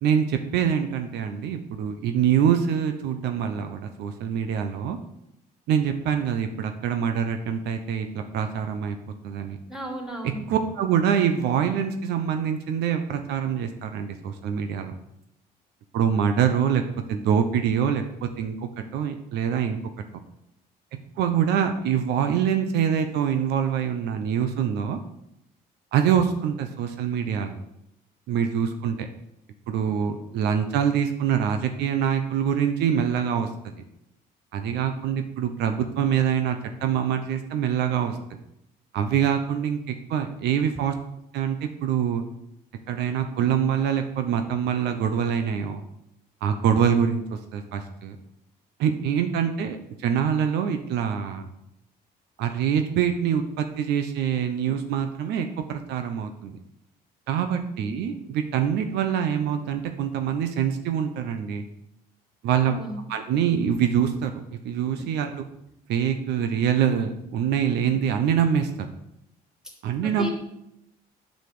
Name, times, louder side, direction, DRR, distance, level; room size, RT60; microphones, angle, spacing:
voice 1, 0.0-5.0 5.7-9.0 9.2-9.6 10.5-15.0 15.9-16.8 17.1-19.8 21.2-25.0 25.9-27.6 28.3-29.1 29.7-33.5 34.5-38.2 38.9-40.9 41.3-42.2 42.9-45.8 46.4-47.2 47.5-48.2 48.8-49.8 50.0-51.5 52.4-56.6 57.3-61.6 62.4-62.8 63.1-65.4 65.9-68.9 69.8-70.3, right 8 dB, 85° right, 7 dB, 1.0 m, -25 dB
voice 2, 9.7-10.4 62.6-63.0 70.0-70.3, right 1 dB, 5° right, -1 dB, 3.2 m, -34 dB
8.2 x 6.7 x 6.8 m, 0.79 s
cardioid pair, 110°, 17 cm